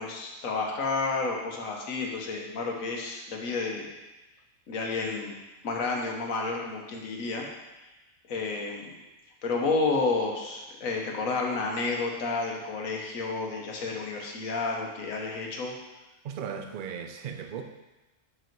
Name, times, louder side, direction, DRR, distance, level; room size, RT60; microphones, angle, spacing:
voice 1, 0.0-3.9 4.7-5.3 5.6-7.5 8.3-8.9 9.4-15.7, left 3 dB, 75° left, 0 dB, 1.5 m, -30 dB
voice 2, 16.2-17.6, right 7 dB, 55° right, 5 dB, 0.6 m, -36 dB
6.3 x 5.0 x 4.6 m, 1.1 s
omnidirectional pair, 1.4 m